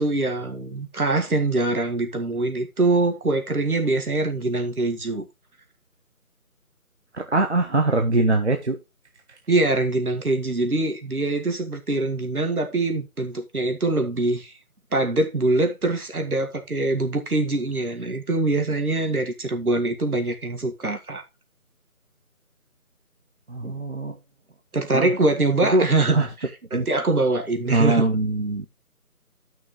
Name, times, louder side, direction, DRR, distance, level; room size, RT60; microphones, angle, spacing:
voice 1, 0.0-5.3 9.5-14.5 14.9-21.2 23.6-23.7 24.7-26.3 26.7-28.1, right 2 dB, 70° right, 1.9 m, -23 dB
voice 2, 7.1-8.8 23.5-24.2 24.9-25.1 25.7-25.9 26.1-26.3 26.7-26.9 27.7-28.7, right 2 dB, 45° right, 1.0 m, -22 dB
12.5 x 6.1 x 3.1 m
figure-of-eight pair, 165°, 45 cm